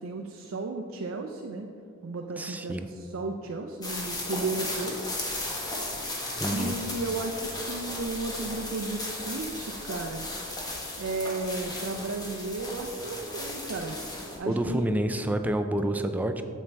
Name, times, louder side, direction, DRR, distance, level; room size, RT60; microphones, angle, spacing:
voice 1, 0.0-1.7 2.0-5.0 6.5-10.3 11.0-14.0 14.4-14.9, right 3 dB, 70° right, 3 dB, 0.5 m, -34 dB
voice 2, 2.4-2.9 6.4-6.7 14.5-16.4, right 1 dB, 10° right, 7 dB, 0.3 m, -28 dB
sound 1, 3.8-14.4, left 1 dB, 20° left, 1.1 m, -35 dB
7.3 x 7.2 x 3.3 m, 2.3 s
head